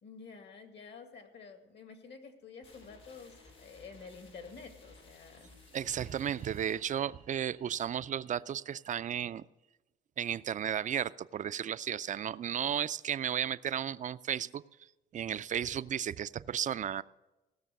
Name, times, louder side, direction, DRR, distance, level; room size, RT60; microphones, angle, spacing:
voice 1, 0.0-5.5, left 5 dB, 60° left, 6 dB, 2.0 m, -50 dB
sound 1, 2.6-8.3, left 3 dB, 85° left, 3.3 m, -58 dB
voice 2, 5.7-9.4 10.2-14.6 15.1-17.0, right 9 dB, 40° right, 15 dB, 0.4 m, -34 dB
16.5 x 6.7 x 6.5 m, 1.0 s
cardioid pair, 90°, 20 cm